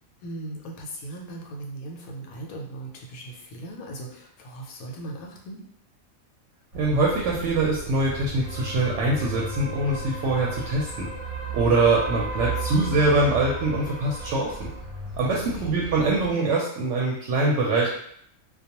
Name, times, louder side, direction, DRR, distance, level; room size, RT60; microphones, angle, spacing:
voice 1, 0.2-5.6 15.3-15.9, right 2 dB, 90° left, 0 dB, 1.1 m, -38 dB
sound 1, 6.7-16.3, right 2 dB, 35° right, 0.6 m, -34 dB
voice 2, 6.7-11.1 11.5-14.7 15.2-17.9, right 2 dB, 65° right, -2 dB, 0.8 m, -23 dB
2.3 x 2.2 x 2.8 m, 0.67 s
omnidirectional pair, 1.4 m